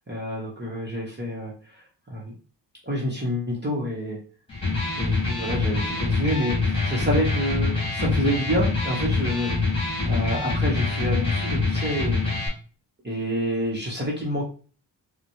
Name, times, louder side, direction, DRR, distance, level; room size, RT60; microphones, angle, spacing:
voice 1, 0.1-1.8 2.1-2.2 2.8-4.2 4.9-9.8 10.1-12.2 13.0-14.4, equal, 25° right, -4 dB, 1.0 m, -28 dB
Electric guitar, 4.5-12.5, left 3 dB, 10° left, 1.9 m, -25 dB
4.1 x 2.2 x 3.0 m, 0.39 s
cardioid pair, 70°, 43 cm